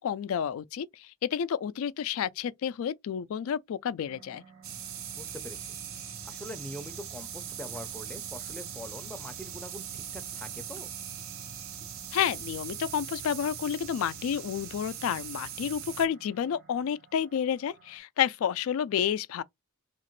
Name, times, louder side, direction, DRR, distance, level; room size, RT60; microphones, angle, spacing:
voice 1, 0.0-4.4 12.1-19.4, left 8 dB, 75° left, 0.3 m, -30 dB
sound 1, 4.1-18.0, right 5 dB, 50° right, 0.9 m, -55 dB
sound 2, 4.6-16.1, right 8 dB, 65° right, 0.6 m, -41 dB
voice 2, 5.2-5.7 6.3-10.9, left 1 dB, 5° left, 0.5 m, -43 dB
2.9 x 2.4 x 3.1 m
head